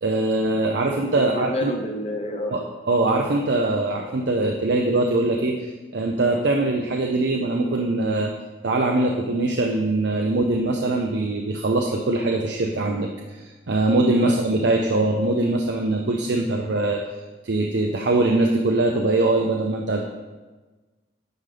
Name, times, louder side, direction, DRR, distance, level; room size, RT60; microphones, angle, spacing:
voice 1, 0.0-1.7 2.5-8.3 8.6-13.1 13.4-17.0 17.4-20.0, right 2 dB, 65° right, 1 dB, 0.6 m, -22 dB
voice 2, 1.1-2.6 14.0-14.3, left 1 dB, 35° left, 3 dB, 0.7 m, -29 dB
9.3 x 5.3 x 3.3 m, 1.2 s
head